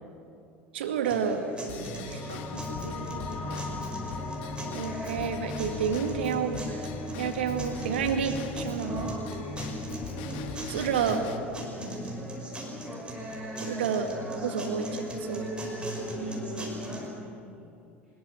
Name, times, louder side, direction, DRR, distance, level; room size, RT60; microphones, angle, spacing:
voice 1, 0.7-1.4 2.1-2.2 4.7-6.8 7.2-9.1 10.7-11.2 13.6-14.1 14.4-15.5, right 7 dB, 65° right, 7 dB, 2.0 m, -30 dB
sound 1, 1.0-17.1, equal, 15° right, 5.2 m, -38 dB
Drum kit / Drum / Bell, 1.7-11.4, left 7 dB, 60° left, 1.6 m, -44 dB
sound 2, 1.9-12.8, left 3 dB, 25° left, 4.0 m, -39 dB
voice 2, 2.3-3.7 11.8-12.0 16.0-17.7, right 1 dB, 85° right, -1 dB, 2.1 m, -44 dB
24.5 x 21.0 x 6.5 m, 2.6 s
figure-of-eight pair, 70°, 6 cm